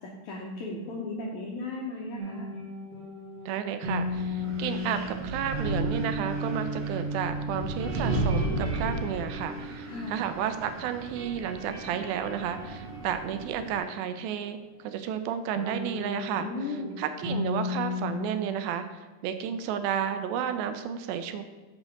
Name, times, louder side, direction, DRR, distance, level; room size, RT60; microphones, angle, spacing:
voice 1, 0.0-2.5 9.8-10.3 16.4-17.0, left 2 dB, 75° left, -2 dB, 1.7 m, -36 dB
sound 1, 2.2-10.7 10.9-14.4 15.6-18.2, left 1 dB, 50° right, 1.3 m, -35 dB
voice 2, 3.5-21.4, right 8 dB, 80° right, 9 dB, 2.2 m, -32 dB
Wind, 3.8-13.8, right 2 dB, 65° right, 2.3 m, -35 dB
6.5 x 4.2 x 5.8 m, 1.3 s
omnidirectional pair, 4.3 m